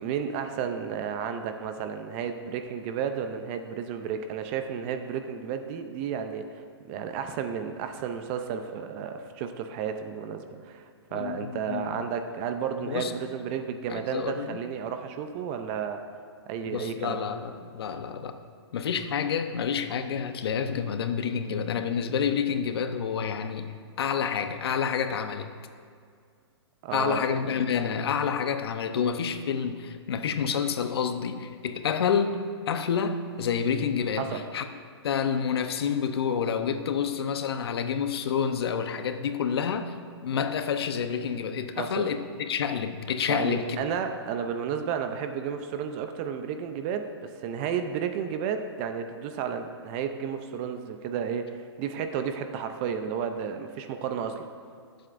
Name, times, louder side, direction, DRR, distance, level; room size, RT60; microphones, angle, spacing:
voice 1, 0.0-6.6 6.9-16.0 16.5-17.2 26.8-27.2 34.2-34.4 41.8-42.1 43.3-54.5, right 7 dB, 25° right, 7 dB, 0.5 m, -32 dB
voice 2, 11.1-12.0 12.9-13.1 13.9-14.6 16.7-18.4 18.7-25.5 26.9-34.7 35.0-39.9 40.2-43.8, left 7 dB, 60° left, 8 dB, 0.8 m, -28 dB
20.0 x 7.8 x 2.6 m, 2.2 s
hypercardioid pair, 155°, 14 cm